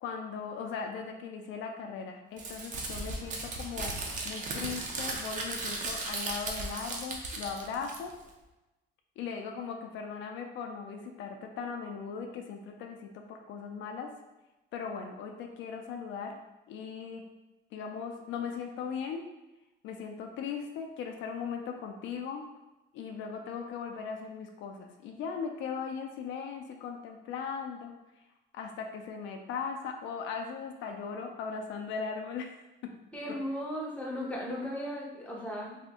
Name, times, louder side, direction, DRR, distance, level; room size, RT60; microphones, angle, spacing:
voice 1, 0.0-3.9 4.2-8.1 9.2-14.1 14.7-16.4 16.7-17.2 17.7-19.2 19.8-22.4 22.9-27.9 28.5-32.5 32.8-32.9, left 6 dB, 70° left, 3 dB, 0.4 m, -38 dB
Crumpling crinkling, 2.4-8.3, right 2 dB, 40° right, 0.5 m, -36 dB
voice 2, 33.1-35.8, equal, 5° left, -3 dB, 0.6 m, -36 dB
2.8 x 2.5 x 3.5 m, 1.0 s
cardioid pair, 155°, 20 cm